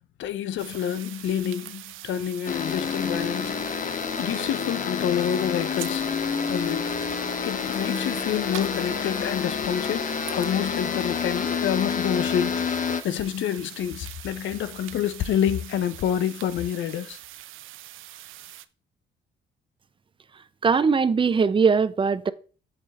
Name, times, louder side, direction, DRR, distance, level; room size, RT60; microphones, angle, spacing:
voice 1, 0.2-3.8 4.2-6.1 6.5-7.0 7.4-17.2, left 9 dB, 75° left, 0.8 m, -28 dB
sound 1, 0.6-18.7, right 15 dB, 85° right, 0.6 m, -43 dB
sound 2, 2.5-13.0, left 6 dB, 40° left, 0.9 m, -28 dB
voice 2, 20.6-22.3, right 5 dB, 25° right, 0.6 m, -20 dB
8.0 x 6.0 x 4.1 m
cardioid pair, 90°, 20 cm